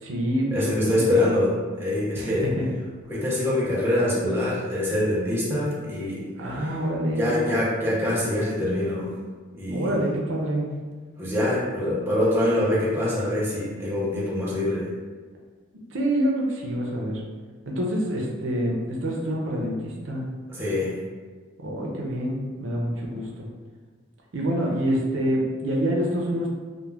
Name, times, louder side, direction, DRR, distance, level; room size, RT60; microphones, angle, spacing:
voice 1, 0.0-1.1 2.2-2.7 6.4-7.3 9.7-10.7 15.9-17.2 17.7-20.4 21.6-23.5 24.3-26.5, equal, 85° right, -1 dB, 0.5 m, -26 dB
voice 2, 0.5-1.5 1.8-2.5 3.1-6.3 7.2-9.1 9.5-9.9 11.2-14.9 20.5-20.9, left 1 dB, 10° right, -7 dB, 0.5 m, -24 dB
2.3 x 2.1 x 3.2 m, 1.5 s
head